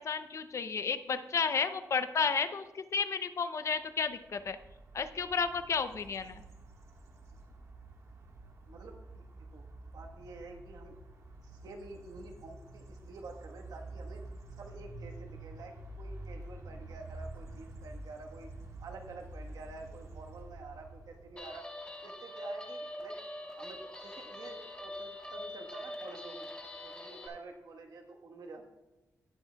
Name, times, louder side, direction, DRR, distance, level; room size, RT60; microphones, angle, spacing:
voice 1, 0.0-4.6 4.9-6.4, left 5 dB, 50° left, 11 dB, 0.5 m, -32 dB
sound 1, 3.9-21.5, right 2 dB, 55° right, 1.5 m, -48 dB
voice 2, 8.7-9.6 9.9-11.0 11.4-14.2 14.6-18.5 18.8-21.6 22.0-23.2 23.6-26.5 26.8-28.6, right 3 dB, 85° right, 3 dB, 1.3 m, -49 dB
Guitar, 21.4-27.3, left 1 dB, 15° left, 1.2 m, -43 dB
17.0 x 7.1 x 2.3 m, 1.1 s
wide cardioid pair, 120°, 6 cm